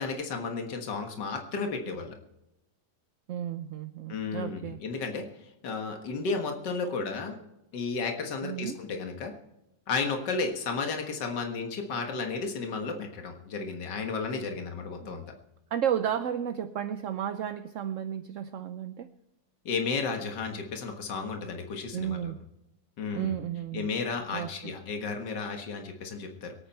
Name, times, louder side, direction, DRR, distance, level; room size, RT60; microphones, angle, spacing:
voice 1, 0.0-2.2 4.1-5.2 5.6-7.4 7.7-9.3 9.9-15.2 19.7-22.3 23.0-23.3 23.7-26.5, left 4 dB, 70° left, 4 dB, 2.2 m, -33 dB
voice 2, 3.3-4.8 8.4-8.8 15.0-15.2 15.7-19.1 21.9-22.4 23.1-23.9 24.3-24.7, right 9 dB, 60° right, 9 dB, 0.8 m, -33 dB
23.5 x 9.1 x 4.4 m, 0.90 s
omnidirectional pair, 1.9 m